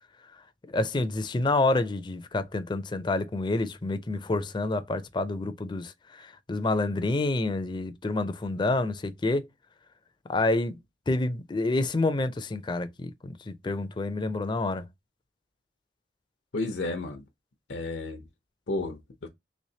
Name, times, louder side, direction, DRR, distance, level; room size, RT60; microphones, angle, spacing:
voice 1, 0.7-9.5 10.3-10.8 11.1-14.8, left 2 dB, 25° left, 0.4 m, -28 dB
voice 2, 16.5-17.2 17.7-18.2 18.7-19.3, left 2 dB, 85° left, 0.7 m, -32 dB
3.2 x 3.2 x 2.7 m
head